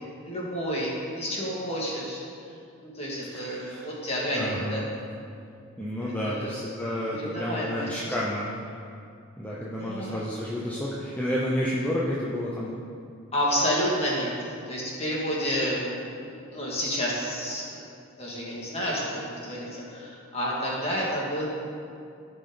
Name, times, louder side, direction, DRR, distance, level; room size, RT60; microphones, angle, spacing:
voice 1, 0.0-2.2 2.8-4.8 6.0-6.5 7.1-8.1 9.8-10.2 13.3-17.8 18.2-21.4, equal, 30° left, -5 dB, 2.0 m, -30 dB
voice 2, 3.3-3.8 4.3-4.8 5.8-8.5 9.4-12.7, equal, 5° left, -6 dB, 0.7 m, -30 dB
14.5 x 5.4 x 3.9 m, 2.5 s
head